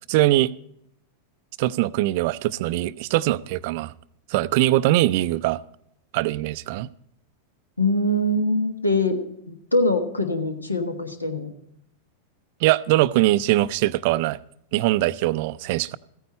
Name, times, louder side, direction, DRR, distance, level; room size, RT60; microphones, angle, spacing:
voice 1, 0.1-0.5 1.6-3.9 4.3-5.6 6.1-6.9 12.6-14.4 14.7-16.0, right 16 dB, 50° right, 0.3 m, -22 dB
voice 2, 7.8-9.2 9.5-11.5, left 1 dB, 85° left, 1.2 m, -23 dB
15.0 x 9.4 x 4.3 m
figure-of-eight pair, 90°, 0 cm